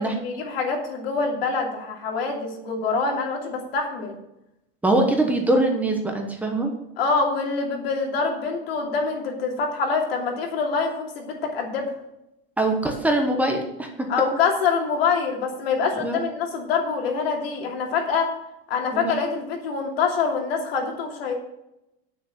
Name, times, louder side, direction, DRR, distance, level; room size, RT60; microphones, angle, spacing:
voice 1, 0.0-4.2 7.0-11.9 14.1-18.3 18.7-21.3, left 5 dB, 85° left, 1 dB, 2.9 m, -25 dB
voice 2, 4.8-6.7 12.6-13.9 16.0-16.2 18.9-19.1, right 2 dB, 5° right, 1 dB, 1.0 m, -22 dB
9.6 x 6.7 x 6.5 m, 0.87 s
supercardioid pair, 165°, 29 cm